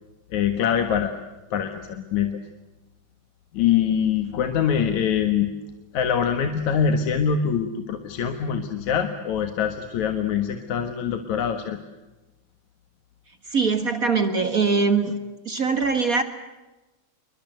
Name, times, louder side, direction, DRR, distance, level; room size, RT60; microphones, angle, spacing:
voice 1, 0.3-1.1 1.5-2.3 3.5-5.5 5.9-11.8, left 8 dB, 75° left, 7 dB, 2.9 m, -24 dB
voice 2, 13.4-15.2 15.4-16.2, right 4 dB, 40° right, 9 dB, 1.5 m, -22 dB
28.0 x 23.5 x 8.0 m, 1.1 s
omnidirectional pair, 3.4 m